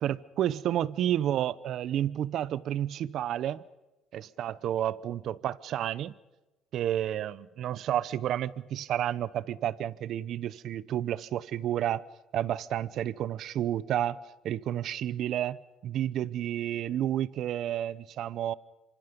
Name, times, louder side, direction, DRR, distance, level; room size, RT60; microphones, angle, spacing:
voice 1, 0.0-3.6 4.1-6.1 6.7-12.0 12.3-14.2 14.4-18.5, right 11 dB, 65° right, 19 dB, 0.8 m, -30 dB
27.0 x 24.5 x 5.3 m, 1.0 s
supercardioid pair, 80°, 0 cm